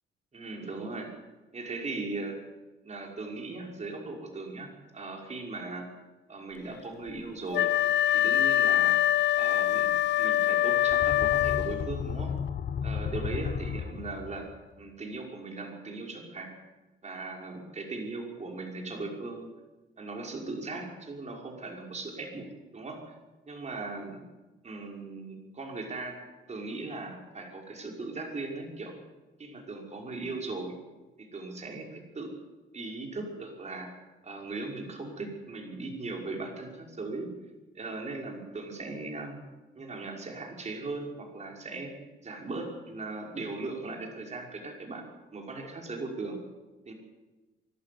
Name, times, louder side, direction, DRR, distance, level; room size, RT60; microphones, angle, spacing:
voice 1, 0.3-1.1 1.5-2.4 2.8-5.8 6.3-7.7 8.1-9.0 9.4-9.9 10.2-12.3 12.8-14.5 14.8-16.5 17.0-19.5 20.0-23.1 23.5-24.2 24.6-26.1 26.5-28.9 29.4-30.7 31.2-32.3 32.7-33.9 34.2-37.3 37.7-39.4 39.7-41.9 42.2-45.0 45.3-46.4 46.9-47.0, right 3 dB, 35° right, 1 dB, 5.7 m, -38 dB
Wind instrument woodwind instrument, 7.5-12.0, left 12 dB, 65° left, 0.6 m, -24 dB
sound 1, 10.8-14.6, left 7 dB, 45° left, 0.9 m, -34 dB
24.0 x 12.5 x 9.6 m, 1.1 s
cardioid pair, 90°, 20 cm